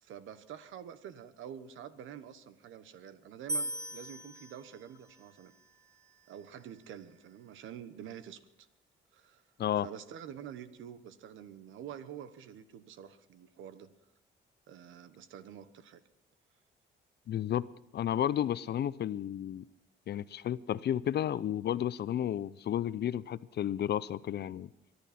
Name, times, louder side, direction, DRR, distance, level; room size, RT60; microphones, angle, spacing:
voice 1, 0.0-5.5 6.3-8.7 9.1-9.4 9.8-13.9 14.7-16.0, right 9 dB, 85° right, 13 dB, 1.2 m, -47 dB
sound 1, 3.5-6.7, right 1 dB, 15° right, 1.6 m, -41 dB
voice 2, 17.3-17.6 17.9-19.6 20.1-24.7, left 11 dB, 55° left, 17 dB, 0.6 m, -32 dB
24.0 x 11.5 x 4.3 m, 0.87 s
cardioid pair, 90°, 20 cm